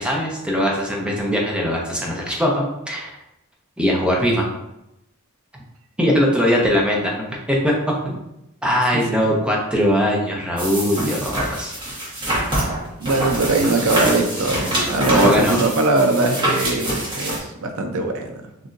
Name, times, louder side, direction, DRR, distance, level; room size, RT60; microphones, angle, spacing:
voice 1, 0.0-3.1 3.8-4.5 6.0-7.1 7.5-7.7 8.0-8.2 8.6-11.7 15.1-15.6, equal, 5° right, -2 dB, 0.8 m, -20 dB
sound 1, 10.6-17.4, right 1 dB, 25° right, 1.3 m, -25 dB
voice 2, 13.0-18.5, right 2 dB, 80° right, 4 dB, 0.7 m, -21 dB
6.2 x 2.8 x 2.6 m, 0.86 s
head